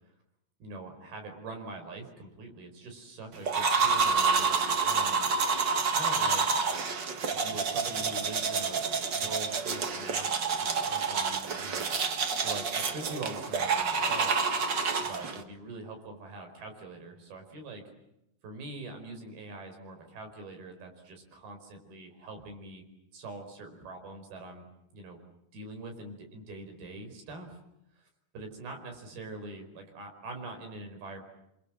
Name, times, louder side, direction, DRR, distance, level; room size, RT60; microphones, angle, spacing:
voice 1, 0.6-5.3 5.9-6.5 7.4-8.9 9.1-10.3 10.6-11.9 12.4-14.3 15.0-17.8 18.4-22.8 23.1-24.7 24.9-25.2 25.5-27.6 28.0-28.1 28.3-31.2, right 2 dB, 75° right, 5 dB, 6.8 m, -43 dB
sound 1, 3.4-15.4, right 5 dB, 50° right, 1.3 m, -28 dB
29.0 x 25.0 x 7.6 m, 0.83 s
omnidirectional pair, 4.4 m